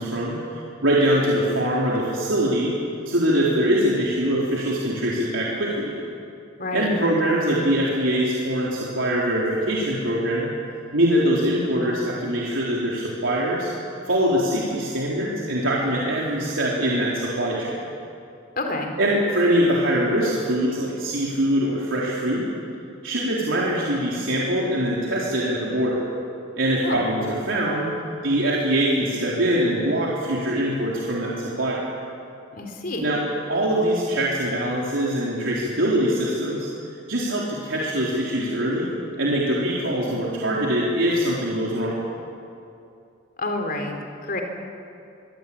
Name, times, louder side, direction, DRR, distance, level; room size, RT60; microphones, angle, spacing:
voice 1, 0.0-2.7 3.1-5.9 6.7-10.5 10.9-13.7 14.1-17.7 19.0-22.4 23.0-26.0 26.6-27.9 28.2-31.9 33.0-33.2 33.5-36.7 37.1-38.9 39.2-42.0, right 1 dB, 80° right, -5 dB, 4.1 m, -23 dB
voice 2, 6.6-7.4 18.6-18.9 26.8-27.0 32.5-33.1 43.4-44.4, left 2 dB, 50° left, 3 dB, 4.0 m, -29 dB
24.0 x 24.0 x 8.8 m, 2.5 s
head